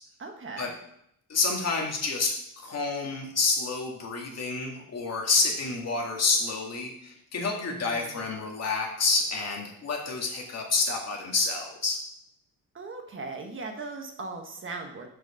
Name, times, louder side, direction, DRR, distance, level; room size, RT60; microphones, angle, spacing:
voice 1, 0.2-0.7 7.6-8.3 12.7-15.1, right 3 dB, 35° right, 3 dB, 1.1 m, -39 dB
voice 2, 1.3-12.0, left 3 dB, 45° left, 0 dB, 2.0 m, -28 dB
6.2 x 5.2 x 6.3 m, 0.73 s
cardioid pair, 135°, 35 cm